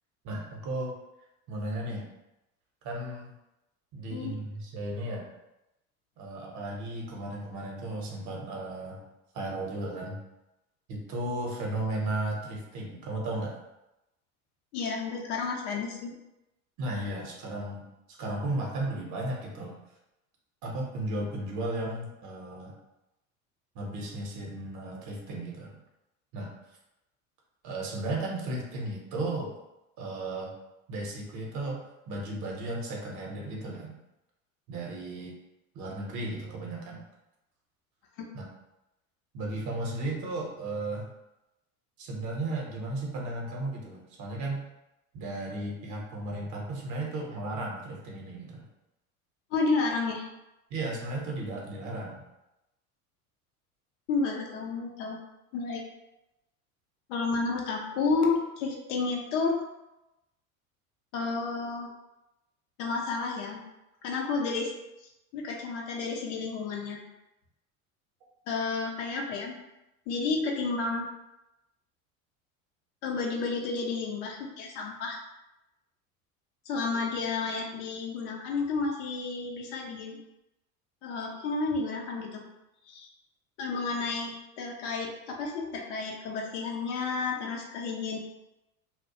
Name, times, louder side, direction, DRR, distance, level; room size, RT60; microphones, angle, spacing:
voice 1, 0.2-0.9 1.5-2.0 2.8-3.3 3.9-5.3 6.2-9.1 9.3-10.2 10.9-13.6 16.8-17.9 18.2-19.7 20.6-22.7 23.7-25.8 26.3-26.5 27.6-29.5 30.0-30.5 30.9-31.8 32.1-34.0 34.7-35.3 35.7-37.0 38.3-38.4 39.3-41.1 42.0-44.6 45.1-48.6 50.7-52.2, right 2 dB, 40° right, -1 dB, 0.8 m, -35 dB
voice 2, 14.7-16.1 38.2-38.3 49.5-50.2 54.1-55.2 55.5-55.8 57.1-59.6 61.1-61.9 62.8-63.6 64.0-64.7 65.3-67.0 68.5-69.6 70.1-71.1 73.0-75.2 76.7-80.2 81.0-82.4 82.9-83.1 83.6-88.2, left 4 dB, 55° left, 0 dB, 0.6 m, -31 dB
2.2 x 2.0 x 2.7 m, 0.93 s
hypercardioid pair, 80°, 43 cm